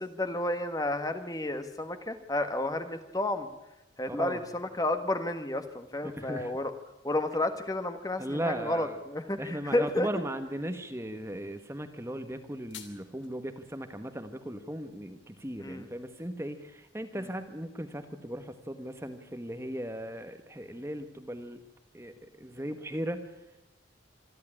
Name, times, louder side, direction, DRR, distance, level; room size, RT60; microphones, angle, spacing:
voice 1, 0.0-3.5 4.0-6.7 7.0-10.1 15.6-15.9 17.2-17.3, left 1 dB, 20° left, 9 dB, 1.5 m, -31 dB
voice 2, 4.1-4.4 6.2-6.5 8.2-9.0 9.4-21.6 21.9-23.2, right 1 dB, 15° right, 8 dB, 1.3 m, -37 dB
sound 1, 12.3-13.3, left 9 dB, 75° left, 2.9 m, -49 dB
27.0 x 11.5 x 9.9 m, 0.95 s
head